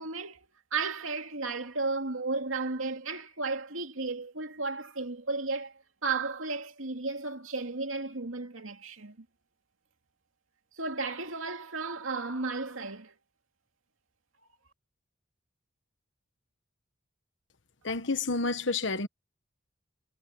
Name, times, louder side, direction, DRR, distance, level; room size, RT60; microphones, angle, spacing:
voice 1, 0.0-9.3 10.8-13.1, right 3 dB, 85° right, 2.6 m, -34 dB
voice 2, 17.8-19.1, left 3 dB, 65° left, 1.4 m, -29 dB
head